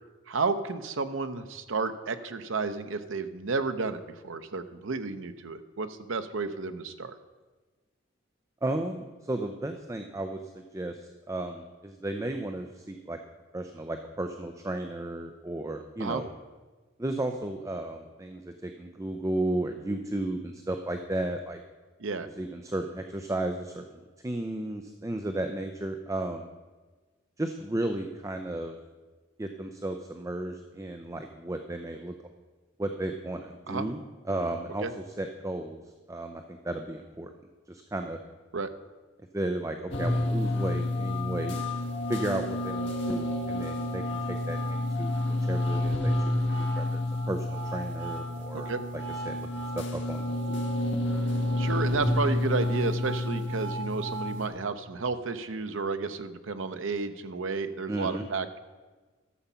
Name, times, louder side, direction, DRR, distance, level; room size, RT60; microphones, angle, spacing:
voice 1, 0.3-7.2 16.0-16.2 22.0-22.3 33.7-33.9 34.8-34.9 38.5-38.7 48.5-48.8 51.6-58.6, right 4 dB, 80° right, 10 dB, 0.7 m, -32 dB
voice 2, 8.6-13.2 13.5-16.3 17.0-21.6 22.4-26.5 27.4-28.8 29.4-32.1 32.8-34.0 34.2-34.9 35.2-35.8 36.1-37.3 37.7-38.2 39.3-41.6 42.1-45.2 45.4-47.0 47.3-48.7 48.9-49.5 49.7-50.7 57.9-58.2, right 1 dB, 15° right, 5 dB, 0.5 m, -34 dB
sound 1, 39.9-54.5, left 1 dB, 65° left, 1.6 m, -29 dB
12.5 x 7.1 x 5.6 m, 1.3 s
head